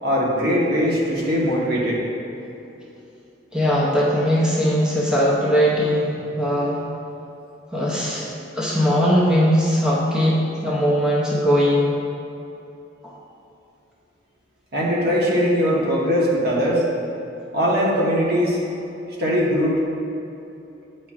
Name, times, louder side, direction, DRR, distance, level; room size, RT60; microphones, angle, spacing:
voice 1, 0.0-2.0 14.7-16.8 17.5-18.6 19.2-19.8, equal, 60° right, -4 dB, 1.2 m, -20 dB
voice 2, 3.5-6.9 7.7-8.3 8.5-12.0 13.0-13.2, equal, 5° right, -6 dB, 0.6 m, -20 dB
9.0 x 4.4 x 2.4 m, 2.8 s
head